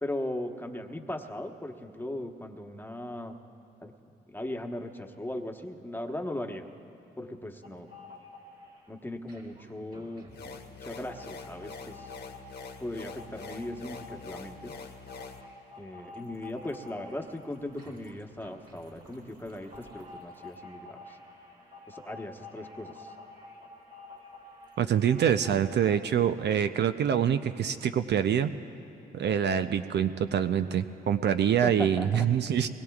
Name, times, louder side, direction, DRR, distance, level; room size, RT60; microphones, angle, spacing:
voice 1, 0.0-3.4 3.8-3.9 4.3-6.6 7.2-7.9 8.9-10.3 10.8-12.1 12.8-14.7 15.8-21.2 21.9-23.1 31.6-32.3, left 1 dB, 10° left, 3 dB, 1.2 m, -38 dB
sound 1, 7.6-8.8 9.2-26.0, left 2 dB, 45° right, 4.4 m, -49 dB
sound 2, 10.3-15.4, left 4 dB, 60° left, 1.3 m, -44 dB
voice 2, 24.8-28.5 29.1-32.7, right 9 dB, 60° right, 9 dB, 0.5 m, -25 dB
23.5 x 21.0 x 2.4 m, 2.8 s
supercardioid pair, 55°, 20 cm